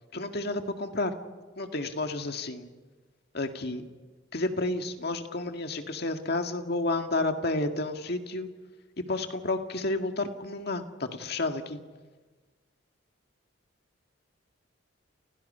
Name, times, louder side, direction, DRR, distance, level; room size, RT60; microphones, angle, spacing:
voice 1, 0.1-1.1 1.6-2.7 3.3-3.9 4.3-8.5 9.0-11.8, left 2 dB, 55° left, 6 dB, 2.0 m, -31 dB
30.0 x 30.0 x 5.6 m, 1.4 s
head